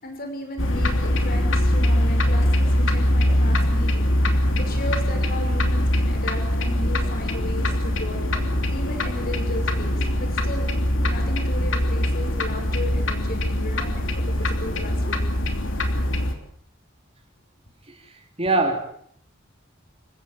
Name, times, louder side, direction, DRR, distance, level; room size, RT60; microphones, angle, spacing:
voice 1, 0.0-4.1 4.6-8.2 8.7-10.7 11.0-15.2, left 1 dB, 50° left, 4 dB, 5.9 m, -35 dB
sound 1, 0.6-16.3, left 1 dB, 70° left, 3.1 m, -22 dB
voice 2, 18.4-18.8, right 2 dB, 30° right, 4 dB, 3.2 m, -23 dB
28.0 x 16.0 x 7.7 m, 0.65 s
head